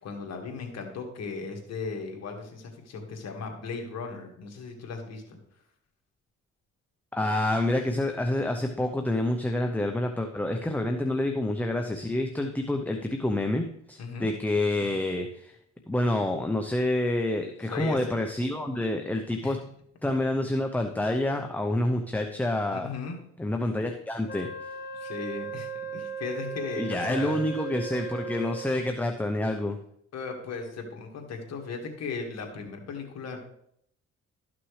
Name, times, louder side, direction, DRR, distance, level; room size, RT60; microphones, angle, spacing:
voice 1, 0.0-5.4 14.0-14.3 17.7-18.2 19.4-19.6 20.0-20.1 20.4-20.5 22.7-23.2 24.9-27.4 30.1-33.4, left 4 dB, 60° left, 2 dB, 1.9 m, -37 dB
voice 2, 7.1-15.6 15.9-19.6 20.0-22.9 23.4-24.5 26.8-29.8, left 1 dB, 5° left, 4 dB, 0.7 m, -28 dB
Wind instrument woodwind instrument, 24.3-29.0, right 5 dB, 35° left, 1.0 m, -37 dB
12.5 x 6.1 x 3.2 m, 0.70 s
cardioid pair, 90°, 30 cm